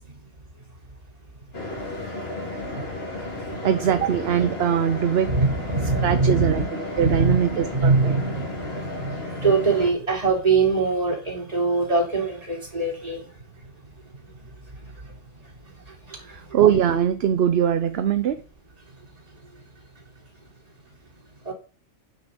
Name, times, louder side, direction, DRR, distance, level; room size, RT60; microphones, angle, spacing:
sound 1, 1.5-9.9, left 2 dB, 45° left, 3.0 m, -33 dB
voice 1, 3.6-5.4 6.0-8.1 16.1-18.4, right 9 dB, 55° right, 0.8 m, -22 dB
voice 2, 5.3-6.7 7.0-9.1 9.4-13.2 21.4-21.5, right 3 dB, 25° right, 3.4 m, -23 dB
6.7 x 6.4 x 7.0 m
omnidirectional pair, 1.4 m